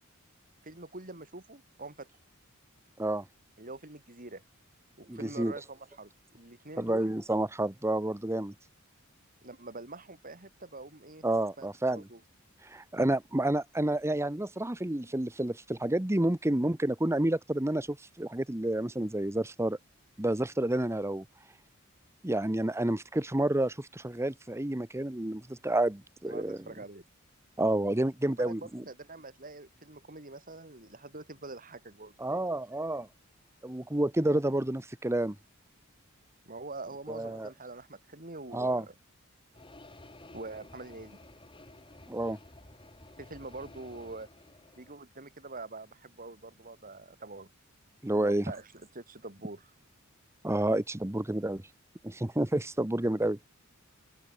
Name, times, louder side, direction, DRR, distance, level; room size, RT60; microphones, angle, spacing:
voice 1, 0.6-2.1 3.6-4.4 5.0-7.2 9.4-11.3 11.6-12.2 26.3-27.0 28.4-32.1 36.5-38.9 40.3-41.2 43.2-44.3 44.8-47.5 48.1-49.7, right 2 dB, 40° right, 5.9 m, -45 dB
voice 2, 5.1-5.5 6.8-8.5 11.2-12.1 12.6-19.8 20.2-21.3 22.2-26.6 27.6-28.8 32.2-33.1 33.6-35.4 37.1-37.5 38.5-38.9 42.1-42.4 48.0-48.5 50.4-51.6 52.0-53.4, right 1 dB, 15° right, 1.0 m, -29 dB
sound 1, 39.5-45.0, left 2 dB, 25° left, 4.1 m, -53 dB
open air
head